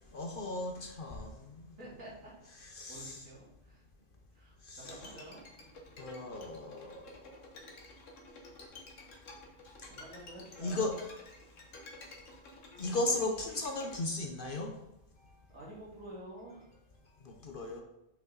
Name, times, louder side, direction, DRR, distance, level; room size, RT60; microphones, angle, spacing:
voice 1, 0.1-1.7 2.6-3.2 4.6-4.9 6.0-7.5 10.6-11.0 12.8-14.7 17.2-17.8, left 2 dB, 50° left, 3 dB, 0.8 m, -36 dB
voice 2, 1.8-2.3 2.9-3.8 4.3-4.5 4.9-5.4 5.7-6.0 9.9-10.9 15.5-16.7, right 1 dB, 80° right, -5 dB, 2.6 m, -49 dB
Bowed string instrument, 4.8-14.0, left 2 dB, 70° left, 1.4 m, -52 dB
5.9 x 5.2 x 3.9 m, 0.86 s
omnidirectional pair, 1.4 m